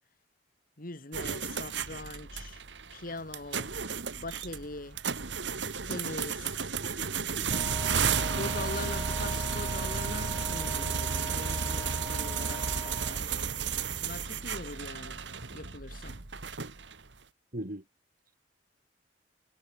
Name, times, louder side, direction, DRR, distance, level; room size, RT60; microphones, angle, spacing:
voice 1, 0.8-2.6 2.9-3.7 4.1-5.0 5.8-6.7 8.3-13.4 14.0-15.2 15.5-16.2, left 2 dB, 50° left, 2.3 m, -42 dB
sound 1, 1.1-17.1, right 6 dB, 75° right, 2.0 m, -33 dB
voice 2, 6.8-7.6 17.5-17.8, right 1 dB, 50° right, 2.6 m, -41 dB
Wind instrument woodwind instrument, 7.5-13.2, equal, ahead, 4.2 m, -43 dB
head